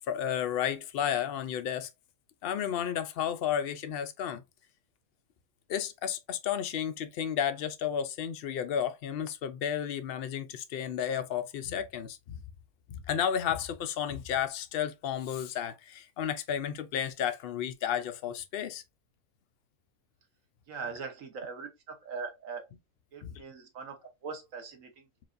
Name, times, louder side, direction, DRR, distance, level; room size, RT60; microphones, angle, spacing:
voice 1, 0.1-1.9 2.4-4.4 5.7-12.4 12.9-18.8 23.2-23.4, left 9 dB, 75° left, 0.5 m, -32 dB
voice 2, 20.7-22.6 23.1-25.2, right 5 dB, 70° right, 1.3 m, -41 dB
4.6 x 2.5 x 2.5 m
omnidirectional pair, 1.5 m